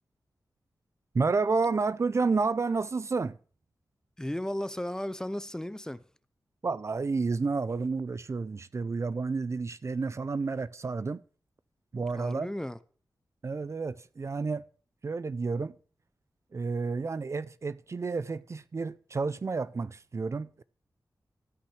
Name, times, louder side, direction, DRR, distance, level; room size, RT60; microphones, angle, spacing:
voice 1, 1.1-3.4 6.6-11.2 11.9-12.5 13.4-14.7 15.0-15.8 16.5-20.6, right 4 dB, 40° right, 0.5 m, -30 dB
voice 2, 4.2-6.0 12.1-12.8, left 1 dB, 10° left, 0.6 m, -35 dB
13.0 x 5.7 x 7.2 m
wide cardioid pair, 100°, 7 cm